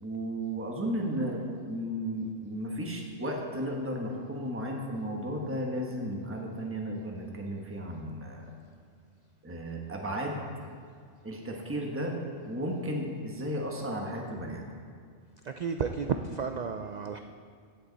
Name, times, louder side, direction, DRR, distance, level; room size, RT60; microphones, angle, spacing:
voice 1, 0.0-8.5 9.4-10.4 11.2-12.2 12.5-14.6, equal, 10° right, 0 dB, 1.1 m, -34 dB
voice 2, 15.4-17.2, right 6 dB, 85° right, 7 dB, 0.3 m, -32 dB
16.0 x 8.0 x 4.0 m, 2.1 s
omnidirectional pair, 1.3 m